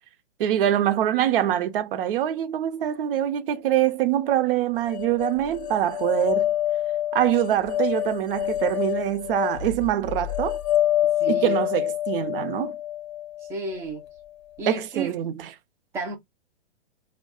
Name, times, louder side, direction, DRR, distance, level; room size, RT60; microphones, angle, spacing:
voice 1, 0.4-6.5 7.1-10.6 11.3-12.7 14.7-15.5, right 12 dB, 50° right, 0.7 m, -24 dB
sound 1, 4.9-14.0, left 12 dB, 35° left, 0.7 m, -27 dB
voice 2, 11.2-11.6 13.5-14.0 14.6-15.1 15.9-16.2, right 3 dB, 10° right, 0.4 m, -31 dB
2.3 x 2.2 x 3.6 m
hypercardioid pair, 135°, 34 cm